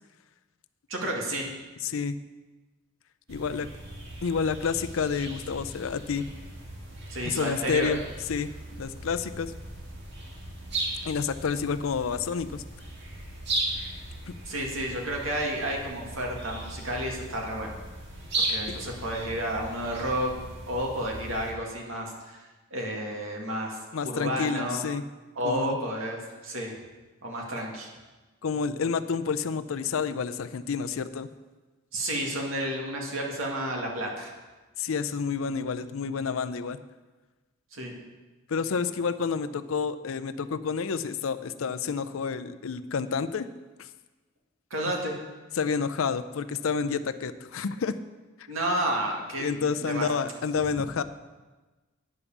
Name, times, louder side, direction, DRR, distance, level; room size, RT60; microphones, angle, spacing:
voice 1, 0.9-1.5 7.1-7.9 14.4-17.7 18.4-20.3 20.7-22.4 22.7-23.8 24.0-24.8 25.4-26.8 27.2-27.9 31.9-34.3 37.7-37.9 44.7-45.2 48.5-50.1, right 1 dB, 90° right, 0 dB, 1.9 m, -31 dB
voice 2, 1.8-2.2 3.3-3.7 4.2-6.3 7.2-8.0 8.3-8.5 8.8-9.5 11.0-12.6 14.3-14.4 18.7-18.8 23.9-25.0 25.4-25.8 28.4-31.3 34.8-36.8 38.5-43.5 43.8-43.9 45.6-47.9 49.4-51.0, left 5 dB, 90° left, 11 dB, 0.5 m, -29 dB
sound 1, 3.3-21.5, right 2 dB, 60° right, 1.9 m, -37 dB
9.7 x 5.3 x 7.1 m, 1.2 s
head